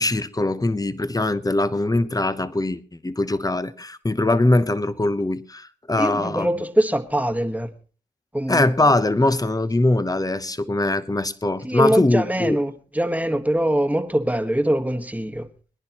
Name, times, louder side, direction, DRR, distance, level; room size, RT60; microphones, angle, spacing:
voice 1, 0.0-6.5 8.5-12.6, left 2 dB, 20° left, 1.0 m, -22 dB
voice 2, 6.0-7.7 8.3-8.7 11.6-15.5, right 1 dB, 10° right, 1.5 m, -23 dB
22.5 x 10.5 x 3.0 m
cardioid pair, 55°, 19 cm